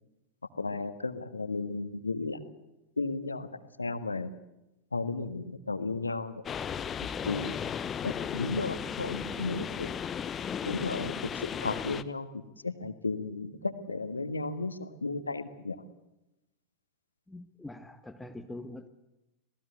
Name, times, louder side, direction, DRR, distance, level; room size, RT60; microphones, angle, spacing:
voice 1, 0.6-2.4 3.0-3.5 3.8-4.3 4.9-6.3 7.2-7.5 8.0-9.9 10.6-15.8, left 3 dB, 80° left, 1.5 m, -34 dB
sound 1, 6.5-12.0, left 8 dB, 25° left, 1.0 m, -35 dB
voice 2, 17.3-18.9, left 2 dB, 5° left, 1.3 m, -44 dB
27.0 x 18.5 x 8.1 m
figure-of-eight pair, 90°, 0 cm